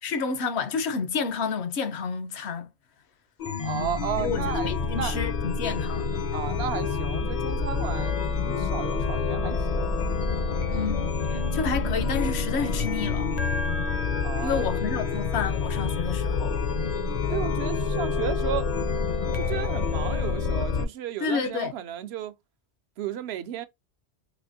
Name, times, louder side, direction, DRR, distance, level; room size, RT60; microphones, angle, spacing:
voice 1, 0.0-2.7 4.2-6.2 10.7-13.5 14.4-16.6 21.2-21.7, left 5 dB, 70° left, 0.9 m, -30 dB
Chime, 3.4-20.8, left 5 dB, 50° left, 0.5 m, -27 dB
voice 2, 3.6-5.2 6.3-9.9 14.2-14.6 17.3-18.7 19.3-22.3 23.0-23.7, right 10 dB, 70° right, 0.8 m, -33 dB
4.1 x 2.5 x 2.6 m
omnidirectional pair, 1.2 m